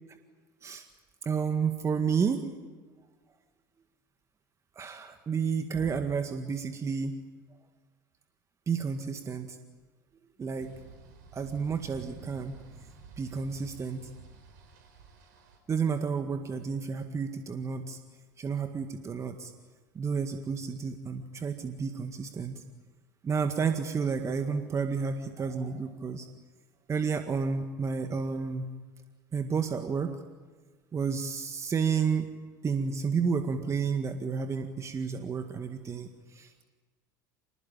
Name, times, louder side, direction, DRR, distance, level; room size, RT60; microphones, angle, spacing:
voice 1, 1.2-2.5 4.8-7.2 8.7-9.6 10.4-10.7 11.3-12.5 13.2-14.1 15.7-18.0 18.4-19.5 20.0-22.6 23.2-26.3 26.9-28.7 29.3-30.2 30.9-32.3 32.6-36.6, right 5 dB, 30° right, 7 dB, 1.9 m, -31 dB
sound 1, 10.6-15.6, right 5 dB, 70° right, 5.6 m, -50 dB
27.0 x 20.5 x 9.1 m, 1.4 s
hypercardioid pair, 75°, 10 cm